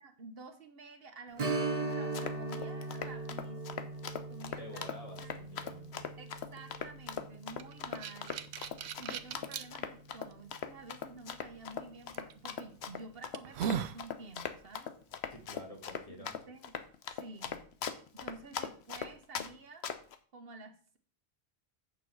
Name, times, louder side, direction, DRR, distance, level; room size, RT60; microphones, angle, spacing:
voice 1, 0.0-3.9 4.3-4.9 5.2-5.4 6.2-8.5 9.0-14.9 16.2-16.8 17.1-17.6 18.1-19.9 20.3-21.0, right 3 dB, 65° right, 7 dB, 1.3 m, -50 dB
Strum, 1.4-10.6 10.9-11.0 13.5-13.7 14.2-14.3, right 3 dB, 40° right, 1.0 m, -40 dB
Run, 1.9-19.5 19.8-20.2, left 7 dB, 80° left, 1.0 m, -40 dB
voice 2, 4.3-6.1 15.3-16.4, left 1 dB, 35° left, 1 dB, 2.2 m, -50 dB
sound 1, 7.6-9.7 10.3-10.4 12.1-12.3 12.9-13.0 13.3-14.0, right 8 dB, 80° right, 0.9 m, -37 dB
8.5 x 6.7 x 4.6 m, 0.43 s
omnidirectional pair, 1.1 m